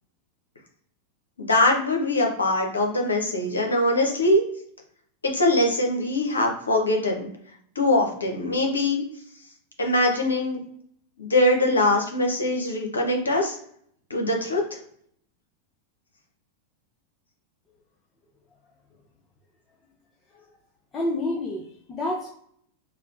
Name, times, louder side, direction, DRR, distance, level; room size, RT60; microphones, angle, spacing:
voice 1, 1.4-4.4 5.2-7.3 7.8-9.0 9.8-10.6 11.2-13.6 14.1-14.6, left 1 dB, 75° left, 2 dB, 0.8 m, -22 dB
voice 2, 20.9-22.3, left 1 dB, 20° left, -3 dB, 0.6 m, -28 dB
4.3 x 2.1 x 2.6 m, 0.66 s
figure-of-eight pair, 90°, 0 cm